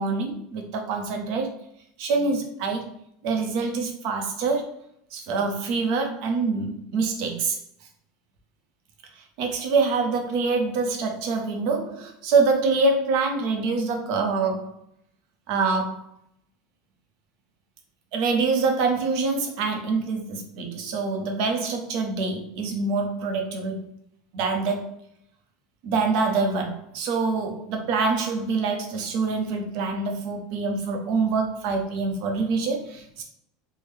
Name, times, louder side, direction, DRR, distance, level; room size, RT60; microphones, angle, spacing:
voice 1, 0.0-1.6 2.0-2.9 3.2-4.8 5.1-7.6 9.2-14.8 15.5-16.1 18.1-23.9 24.3-24.9 25.8-33.2, right 4 dB, 50° right, 3 dB, 0.7 m, -25 dB
3.5 x 2.1 x 3.2 m, 0.71 s
supercardioid pair, 165°, 0 cm